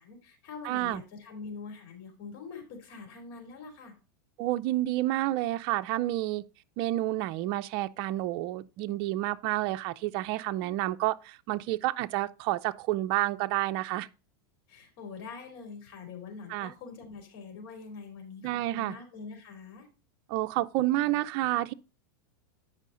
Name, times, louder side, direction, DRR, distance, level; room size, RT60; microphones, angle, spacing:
voice 1, 0.0-3.9 14.7-19.9, left 5 dB, 55° left, 3.4 m, -44 dB
voice 2, 0.6-1.0 4.4-6.4 6.8-14.1 16.5-16.7 18.4-19.0 20.3-21.7, right 16 dB, 50° right, 0.5 m, -29 dB
9.0 x 5.6 x 3.8 m
hypercardioid pair, 125°, 12 cm